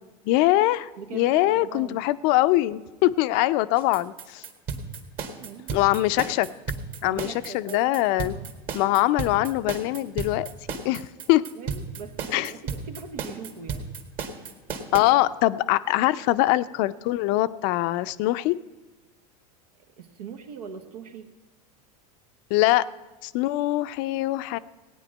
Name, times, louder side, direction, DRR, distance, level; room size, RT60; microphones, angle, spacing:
voice 1, 0.3-4.4 5.7-6.5 7.0-8.3 8.7-10.5 10.8-11.4 12.3-12.5 14.9-18.6 22.5-22.9 23.2-24.6, left 17 dB, 60° left, 15 dB, 0.5 m, -23 dB
voice 2, 1.0-2.0 5.4-5.8 7.0-8.5 11.5-13.9 20.0-21.3, right 6 dB, 85° right, 7 dB, 1.2 m, -41 dB
sound 1, 3.8-15.0, right 5 dB, 45° right, 1.9 m, -33 dB
16.5 x 9.1 x 5.3 m, 1.2 s
hypercardioid pair, 105°, 19 cm